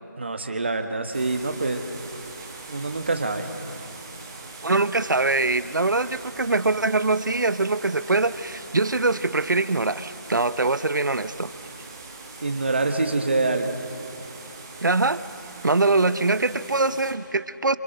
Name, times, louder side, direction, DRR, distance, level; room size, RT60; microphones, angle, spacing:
voice 1, 0.2-1.8 2.7-3.5 12.4-13.8, right 3 dB, 35° right, 7 dB, 1.3 m, -25 dB
sound 1, 1.1-17.1, right 3 dB, 10° right, 1.2 m, -42 dB
voice 2, 4.6-11.5 14.8-15.2 15.6-17.8, right 3 dB, 65° right, 15 dB, 0.9 m, -23 dB
27.5 x 27.5 x 6.6 m, 2.7 s
figure-of-eight pair, 175°, 11 cm